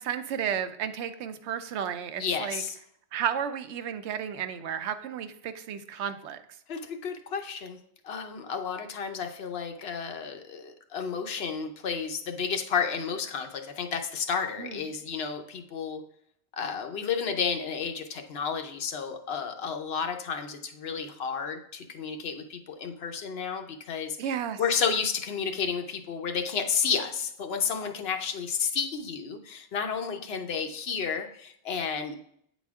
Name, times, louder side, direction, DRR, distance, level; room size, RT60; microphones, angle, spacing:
voice 1, 0.0-2.6 3.1-6.4 14.6-14.8 24.2-24.6, right 8 dB, 90° right, 10 dB, 0.9 m, -33 dB
voice 2, 2.2-2.7 6.7-7.8 8.0-16.0 16.6-24.2 24.6-32.2, left 6 dB, 70° left, 5 dB, 0.9 m, -31 dB
8.4 x 4.1 x 3.5 m, 0.69 s
omnidirectional pair, 1.1 m